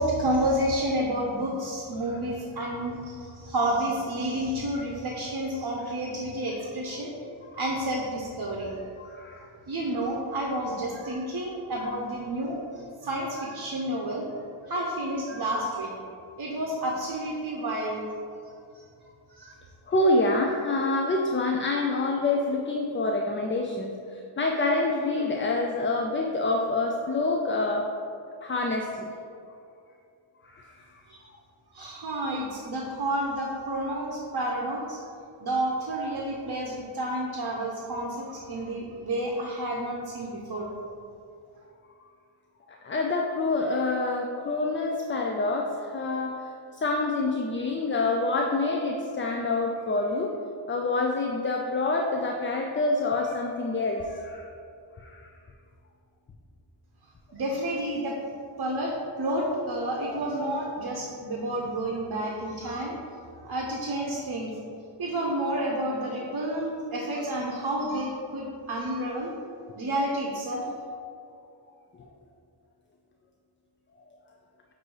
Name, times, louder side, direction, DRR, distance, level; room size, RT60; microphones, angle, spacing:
voice 1, 0.0-7.1 7.5-8.9 9.7-14.2 14.7-15.9 16.4-18.1 19.3-19.5 31.1-31.2 31.7-35.0 35.4-40.7 57.3-58.2 58.6-62.9 63.4-64.5 65.0-69.3 69.7-70.6, right 1 dB, 50° right, -1 dB, 0.8 m, -30 dB
voice 2, 9.0-9.5 11.8-11.9 19.9-27.8 28.4-29.1 30.5-30.7 42.8-46.3 46.7-50.3 50.7-54.4 55.0-55.2 70.5-70.8, left 2 dB, 25° left, 1 dB, 0.4 m, -27 dB
8.1 x 2.7 x 4.7 m, 2.5 s
wide cardioid pair, 100°, 48 cm